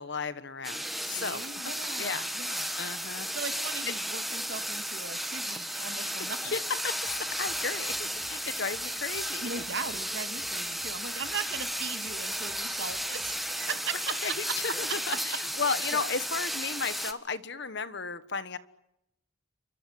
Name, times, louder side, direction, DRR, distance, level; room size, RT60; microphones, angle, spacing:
voice 1, 0.0-1.4 2.0-3.3 5.7-9.5 13.9-18.6, left 4 dB, 55° left, 14 dB, 1.5 m, -35 dB
sound 1, 0.6-17.1, equal, ahead, 1.6 m, -34 dB
voice 2, 1.1-2.7 3.3-6.6 9.4-14.0 14.4-14.5 15.3-15.4 15.9-16.0, right 4 dB, 55° right, 8 dB, 2.8 m, -39 dB
sound 2, 6.8-13.6, right 3 dB, 90° right, 3.5 m, -56 dB
29.5 x 24.5 x 7.8 m, 0.82 s
head